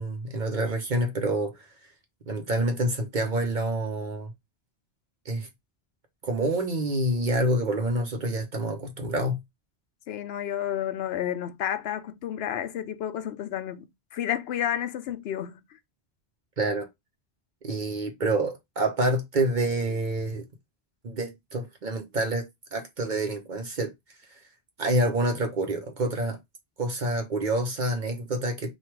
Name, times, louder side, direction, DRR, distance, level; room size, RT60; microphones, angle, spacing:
voice 1, 0.0-1.5 2.3-4.3 5.3-5.5 6.2-9.4 16.6-16.9 17.6-20.4 21.0-22.5 22.7-23.9 24.8-26.4 26.8-28.7, right 1 dB, 50° right, 0.9 m, -27 dB
voice 2, 10.1-15.6, left 10 dB, 80° left, 0.8 m, -31 dB
3.1 x 2.4 x 4.4 m
omnidirectional pair, 1.0 m